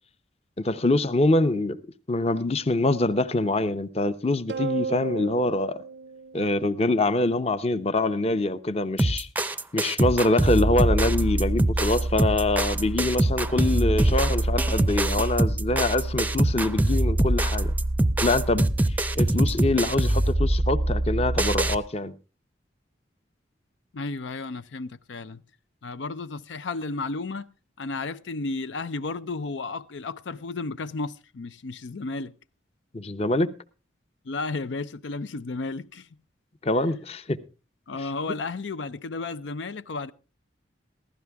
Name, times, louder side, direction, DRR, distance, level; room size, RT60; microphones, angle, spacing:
voice 1, 0.6-1.8 2.1-5.8 6.3-9.3 9.7-17.7 18.2-22.1 32.9-33.5 36.6-37.4, left 2 dB, 35° left, 0.7 m, -24 dB
sound 1, 4.5-7.1, right 5 dB, 65° right, 0.5 m, -34 dB
sound 2, 9.0-21.8, right 1 dB, 10° right, 0.5 m, -23 dB
voice 2, 23.9-25.4 25.8-27.5 27.8-32.3 34.3-36.1 37.9-40.1, left 3 dB, 80° left, 0.5 m, -33 dB
15.5 x 12.5 x 3.5 m
head